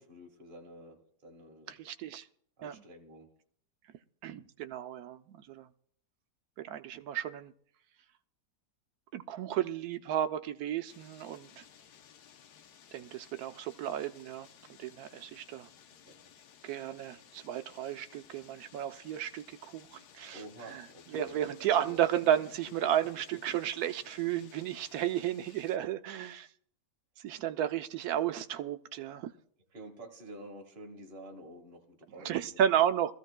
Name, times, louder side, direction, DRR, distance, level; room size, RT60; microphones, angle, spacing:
voice 1, 0.0-1.8 2.6-3.3 16.1-16.2 20.3-22.0 29.7-32.6, right 1 dB, 35° right, 1.8 m, -49 dB
voice 2, 1.7-2.3 2.6-2.8 4.2-5.7 6.6-7.5 9.1-11.6 12.9-14.5 14.8-15.7 16.6-26.5 27.2-29.3 32.2-33.1, right 10 dB, 70° right, 1.1 m, -33 dB
sound 1, 10.9-25.8, left 8 dB, 80° left, 1.3 m, -58 dB
22.5 x 14.5 x 2.2 m
omnidirectional pair, 1.7 m